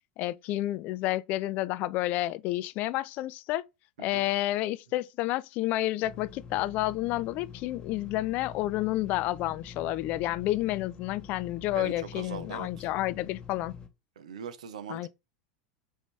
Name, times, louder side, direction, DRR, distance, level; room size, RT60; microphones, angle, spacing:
voice 1, 0.2-3.6 4.0-13.8 14.9-15.1, left 16 dB, 45° left, 0.3 m, -30 dB
voice 2, 4.0-4.3 11.7-12.9 14.2-15.1, right 7 dB, 70° right, 0.6 m, -41 dB
sound 1, 6.0-13.9, left 6 dB, 25° left, 0.9 m, -46 dB
4.9 x 2.7 x 3.3 m
figure-of-eight pair, 85°, 4 cm